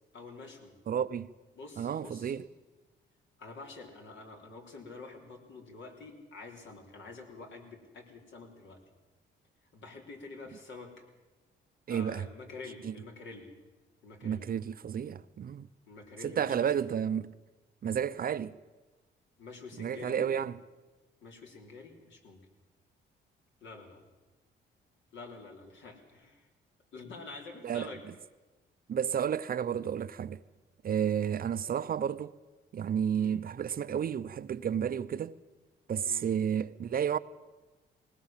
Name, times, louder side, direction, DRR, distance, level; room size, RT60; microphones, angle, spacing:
voice 1, 0.1-0.7 1.5-2.4 3.4-8.8 9.7-11.0 11.9-13.5 14.0-14.5 15.9-16.9 19.4-20.4 21.2-22.4 23.6-24.0 25.1-26.5 26.9-28.0 33.1-33.4 36.0-36.3, left 3 dB, 70° left, 3.8 m, -47 dB
voice 2, 0.9-1.3 1.8-2.5 11.9-12.2 12.8-12.9 14.2-15.7 16.2-17.3 17.8-18.6 19.8-20.6 27.6-27.9 28.9-30.4 30.8-32.3 32.7-35.3 35.9-37.2, right 8 dB, 50° right, 0.7 m, -31 dB
20.0 x 19.0 x 7.4 m
cardioid pair, 90°, 20 cm